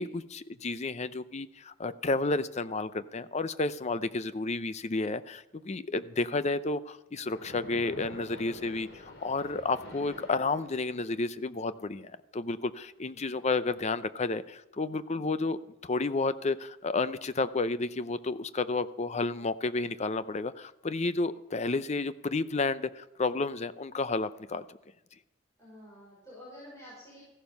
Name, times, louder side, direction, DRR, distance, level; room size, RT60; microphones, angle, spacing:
voice 1, 0.0-24.8, left 3 dB, 35° left, 13 dB, 0.6 m, -31 dB
Splash splatter, 7.2-11.3, left 1 dB, 70° left, 3.5 m, -47 dB
voice 2, 13.1-13.4 25.6-27.2, left 1 dB, 15° left, -7 dB, 5.4 m, -50 dB
15.0 x 11.5 x 5.3 m, 0.94 s
head